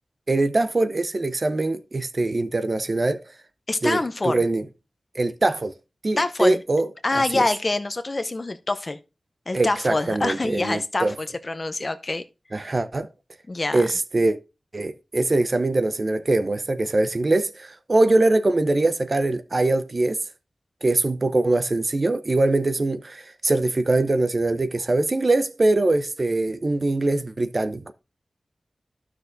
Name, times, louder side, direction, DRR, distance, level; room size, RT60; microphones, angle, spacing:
voice 1, 0.3-3.2 3.8-4.6 5.1-5.7 6.0-6.9 7.3-7.4 9.5-11.1 12.5-13.1 13.7-14.4 14.7-20.2 20.8-27.9, right 2 dB, 50° right, 0.7 m, -22 dB
voice 2, 3.7-4.4 6.2-6.6 7.0-9.0 9.5-12.7 13.5-13.9, left 2 dB, 45° left, 0.7 m, -26 dB
12.0 x 6.0 x 2.6 m
cardioid pair, 45°, 0 cm